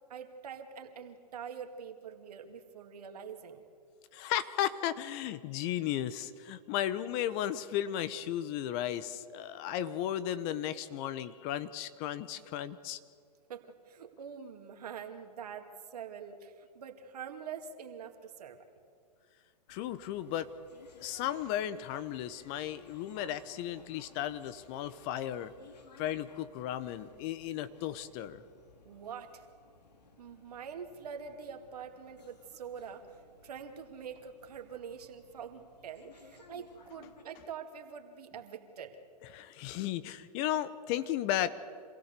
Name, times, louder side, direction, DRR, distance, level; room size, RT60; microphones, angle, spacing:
voice 1, 0.1-3.6 13.5-18.7 28.8-29.5 30.2-39.0, right 7 dB, 70° right, 5 dB, 2.4 m, -45 dB
voice 2, 4.1-13.0 19.7-20.5 21.0-25.5 26.0-28.4 39.3-41.6, left 11 dB, 40° left, 15 dB, 1.0 m, -35 dB
sound 1, 19.7-37.2, left 4 dB, 80° left, 2.5 m, -59 dB
26.5 x 16.5 x 6.8 m, 2.2 s
hypercardioid pair, 120°, 21 cm